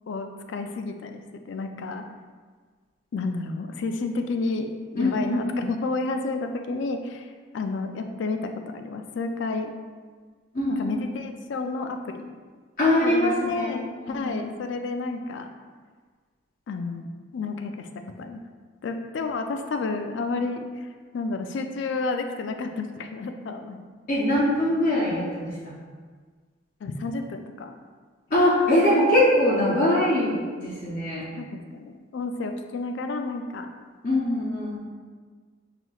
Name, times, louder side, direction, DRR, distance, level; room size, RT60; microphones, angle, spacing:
voice 1, 0.1-2.0 3.1-9.7 10.7-12.4 13.0-15.5 16.7-17.1 17.3-17.9 18.2-18.4 18.8-20.9 21.1-23.9 26.8-27.8 31.4-33.7, left 3 dB, 65° left, 6 dB, 0.3 m, -31 dB
voice 2, 4.9-5.6 10.5-10.9 12.8-13.7 14.1-14.5 24.1-25.7 28.3-31.3 34.0-34.8, left 1 dB, 45° left, -8 dB, 0.7 m, -22 dB
5.7 x 2.9 x 2.3 m, 1.5 s
head